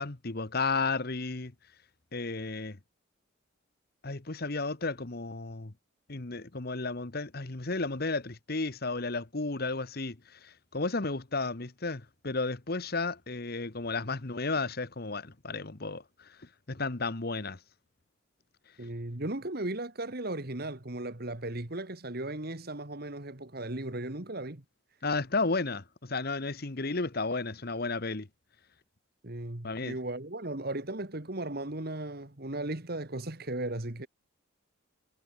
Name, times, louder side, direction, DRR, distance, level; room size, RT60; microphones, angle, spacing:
voice 1, 0.0-1.5 2.1-2.8 4.0-5.7 6.1-16.3 16.7-17.6 25.0-28.3 29.6-29.9, left 3 dB, 50° left, 1.3 m, -33 dB
voice 2, 18.8-24.6 29.2-34.1, right 2 dB, 50° right, 2.0 m, -36 dB
head